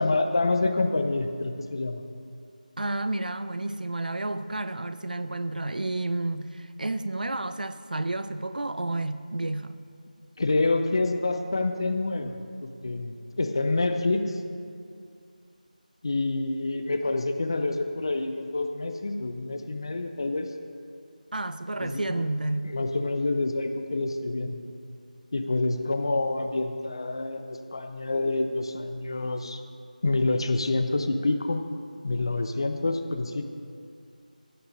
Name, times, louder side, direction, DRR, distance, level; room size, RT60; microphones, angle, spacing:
voice 1, 0.0-2.0 10.4-14.4 16.0-20.5 21.8-22.3 22.6-24.6 25.3-29.6 30.0-31.6 32.0-33.5, left 2 dB, 35° left, 7 dB, 0.6 m, -27 dB
voice 2, 2.8-9.8 21.3-22.7, right 2 dB, 70° right, 12 dB, 0.5 m, -31 dB
16.0 x 5.6 x 5.1 m, 2.4 s
figure-of-eight pair, 175°, 5 cm